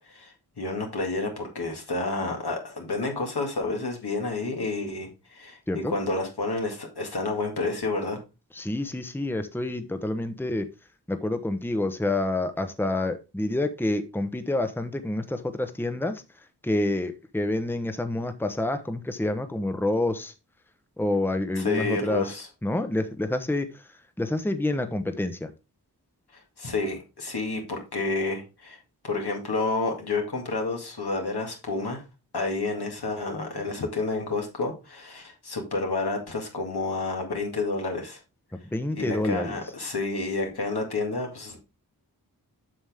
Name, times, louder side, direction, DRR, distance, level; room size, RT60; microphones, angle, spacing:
voice 1, 0.1-8.2 21.6-22.5 26.6-28.8 29.0-32.0 32.3-38.2 38.9-41.6, left 3 dB, 80° left, 1 dB, 2.2 m, -30 dB
voice 2, 8.5-10.7 11.1-16.2 16.6-20.3 21.0-22.3 22.6-23.8 24.2-25.5 38.7-39.6, left 2 dB, 5° left, 9 dB, 0.9 m, -28 dB
7.5 x 6.2 x 3.5 m, 0.27 s
wide cardioid pair, 45°, 38 cm